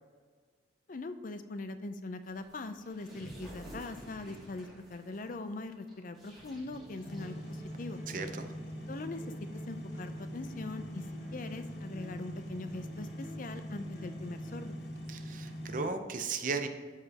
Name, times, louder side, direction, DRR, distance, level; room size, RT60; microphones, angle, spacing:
voice 1, 0.9-8.0 8.9-9.2 9.7-11.1 11.3-14.8, left 2 dB, 50° left, 10 dB, 0.5 m, -41 dB
sound 1, 2.2-8.1, right 1 dB, ahead, 2.4 m, -52 dB
sound 2, 6.7-14.7, left 1 dB, 15° right, 2.1 m, -54 dB
sound 3, 7.1-15.9, equal, 70° left, 1.3 m, -42 dB
voice 2, 8.1-8.4 15.1-16.7, right 4 dB, 50° right, 7 dB, 0.6 m, -35 dB
12.5 x 4.9 x 2.9 m, 1.5 s
head